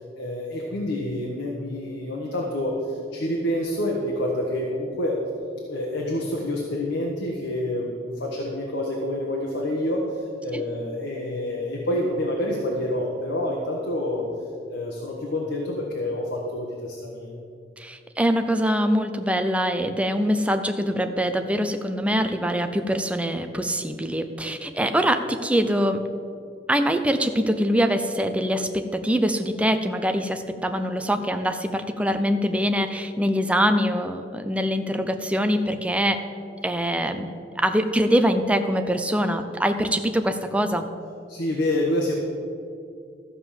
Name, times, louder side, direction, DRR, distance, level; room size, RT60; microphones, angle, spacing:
voice 1, 0.1-5.2 5.7-14.2 14.7-17.3 41.3-42.1, left 1 dB, 80° left, -2 dB, 1.4 m, -27 dB
voice 2, 17.8-26.0 26.7-36.2 36.6-40.9, equal, 5° right, 7 dB, 0.6 m, -24 dB
13.5 x 5.0 x 7.4 m, 2.4 s
head